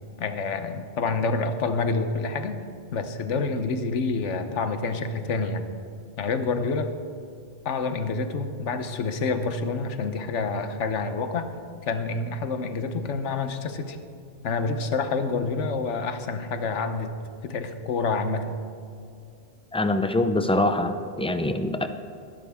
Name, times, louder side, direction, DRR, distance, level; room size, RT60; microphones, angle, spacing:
voice 1, 0.2-2.6 2.9-5.6 6.2-6.9 7.6-11.5 11.8-14.0 14.4-17.1 17.4-18.6, left 4 dB, 85° left, 9 dB, 1.2 m, -28 dB
voice 2, 19.7-21.9, left 1 dB, 10° left, 8 dB, 0.3 m, -24 dB
21.0 x 11.0 x 3.6 m, 2.4 s
omnidirectional pair, 1.2 m